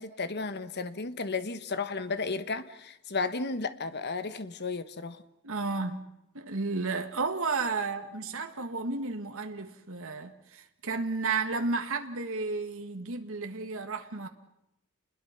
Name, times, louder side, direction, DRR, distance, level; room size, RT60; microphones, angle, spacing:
voice 1, 0.0-5.2, left 4 dB, 50° left, 1.3 m, -33 dB
voice 2, 5.4-6.0 6.4-14.3, right 4 dB, 65° right, 1.8 m, -32 dB
29.5 x 21.0 x 5.9 m
head